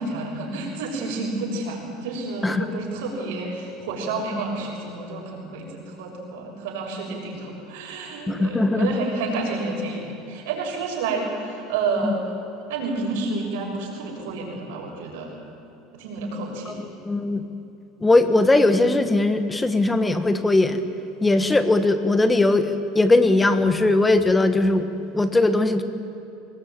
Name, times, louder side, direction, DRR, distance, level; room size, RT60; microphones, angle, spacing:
voice 1, 0.0-12.2 12.7-15.3 15.9-16.8, right 3 dB, 80° right, -1 dB, 6.4 m, -30 dB
voice 2, 8.3-8.9 12.0-12.2 16.7-17.4 18.0-20.8 21.2-25.8, left 2 dB, 10° left, 9 dB, 1.5 m, -20 dB
23.5 x 20.0 x 9.0 m, 2.9 s
supercardioid pair, 135°, 0 cm